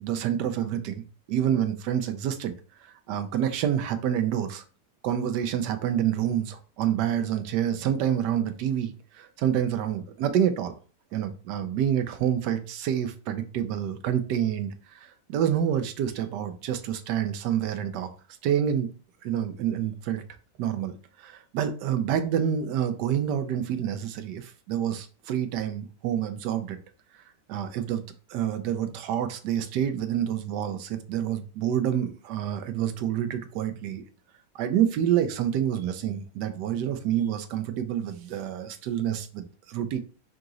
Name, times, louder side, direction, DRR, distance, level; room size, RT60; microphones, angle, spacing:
voice 1, 0.0-2.5 2.8-4.6 5.0-10.7 11.1-18.1 18.4-18.9 19.2-20.2 20.6-20.9 21.2-26.8 27.5-34.0 34.5-40.0, right 9 dB, 75° right, 9 dB, 1.1 m, -28 dB
3.8 x 2.9 x 3.7 m, 0.37 s
omnidirectional pair, 2.0 m